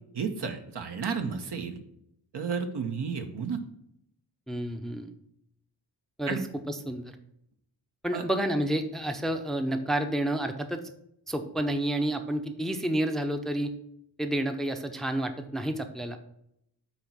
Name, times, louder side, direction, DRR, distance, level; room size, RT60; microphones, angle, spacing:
voice 1, 0.1-1.8 2.3-3.6 6.3-6.4 8.1-8.2, right 6 dB, 65° right, 6 dB, 1.0 m, -32 dB
voice 2, 4.5-5.1 6.2-6.4 6.7-7.2 8.0-10.8 11.3-13.7 14.2-16.2, right 1 dB, ahead, 7 dB, 0.6 m, -30 dB
8.3 x 3.0 x 6.1 m, 0.76 s
cardioid pair, 80°, 44 cm